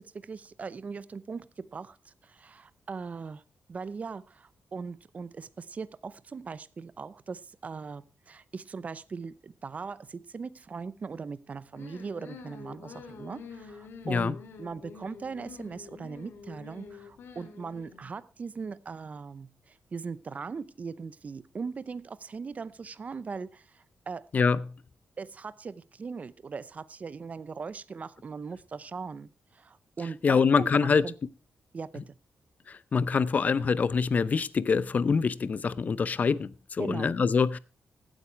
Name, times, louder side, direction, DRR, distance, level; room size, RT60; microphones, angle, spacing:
voice 1, 0.0-3.4 3.7-24.3 25.2-31.1 31.7-32.1 36.8-37.1, right 5 dB, 40° right, 0.7 m, -40 dB
sound 1, 11.7-18.1, left 5 dB, 80° left, 2.3 m, -47 dB
voice 2, 30.2-31.0 32.7-37.6, left 5 dB, 45° left, 0.7 m, -25 dB
15.5 x 9.3 x 4.6 m
cardioid pair, 105°, 4 cm